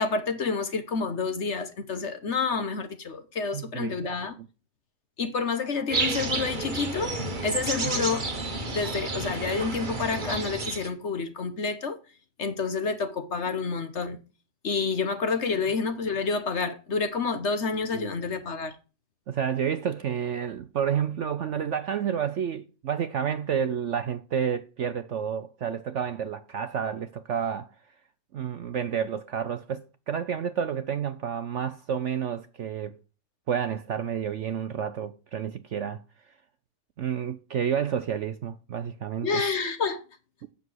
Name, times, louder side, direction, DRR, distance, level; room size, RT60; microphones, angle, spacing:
voice 1, 0.0-4.3 5.2-7.1 7.4-8.3 8.7-12.0 12.4-14.2 14.6-18.8 39.2-40.0, left 4 dB, 50° left, 1.2 m, -29 dB
voice 2, 3.5-4.5 7.8-8.0 17.9-18.1 19.3-27.7 28.3-33.0 33.5-36.0 37.0-39.4, right 8 dB, 60° right, 0.8 m, -30 dB
sound 1, 5.9-10.9, right 3 dB, 30° right, 1.4 m, -30 dB
7.8 x 6.8 x 7.9 m
omnidirectional pair, 1.8 m